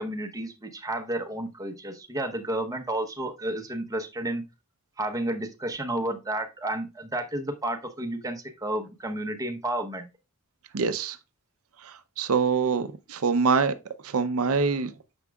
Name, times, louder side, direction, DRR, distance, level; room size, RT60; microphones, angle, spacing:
voice 1, 0.0-4.5 5.0-10.1, right 1 dB, 15° right, 0.9 m, -31 dB
voice 2, 10.7-11.2 11.8-13.8 14.0-14.9, right 5 dB, 70° right, 0.6 m, -25 dB
9.5 x 6.1 x 2.3 m
head